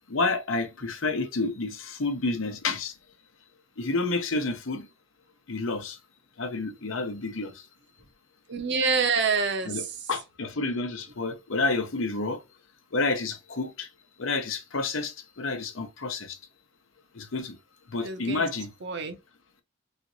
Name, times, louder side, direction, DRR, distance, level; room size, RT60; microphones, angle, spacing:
voice 1, 0.1-2.9 3.8-4.9 5.5-6.0 6.4-7.5 9.6-12.4 12.9-13.9 14.2-16.4 17.1-17.6 17.9-18.7, left 3 dB, 75° left, 0.8 m, -29 dB
voice 2, 8.5-9.9 18.0-18.4 18.8-19.2, right 5 dB, 60° right, 0.8 m, -26 dB
3.2 x 2.9 x 2.7 m
head